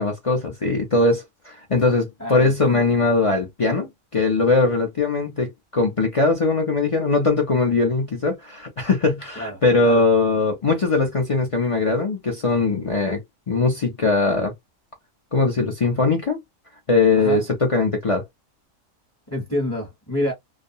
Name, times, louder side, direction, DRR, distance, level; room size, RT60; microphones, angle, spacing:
voice 1, 0.0-13.2 13.5-14.5 15.3-16.4 16.9-18.2, left 3 dB, 40° left, 0.5 m, -20 dB
voice 2, 2.2-2.9 9.4-10.0 17.1-17.4 19.3-20.3, left 1 dB, 15° left, 0.8 m, -28 dB
2.4 x 2.2 x 2.6 m
omnidirectional pair, 1.4 m